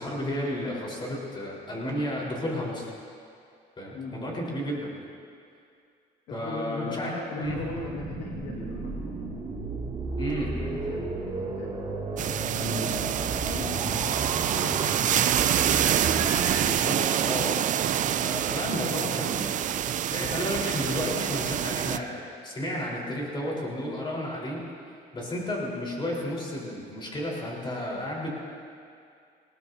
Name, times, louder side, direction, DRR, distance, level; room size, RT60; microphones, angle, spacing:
voice 1, 0.0-2.9 3.8-4.9 6.3-7.6 10.2-10.8 16.5-28.3, left 1 dB, 30° left, -3 dB, 4.3 m, -33 dB
voice 2, 6.3-9.1 10.6-14.1 14.6-14.9 15.2-16.0, left 3 dB, 85° left, -2 dB, 2.0 m, -38 dB
sound 1, 7.4-16.7, right 3 dB, 30° right, 2.5 m, -33 dB
sound 2, 12.2-22.0, right 10 dB, 50° right, 0.5 m, -26 dB
20.0 x 18.5 x 2.8 m, 2.4 s
cardioid pair, 110°, 17 cm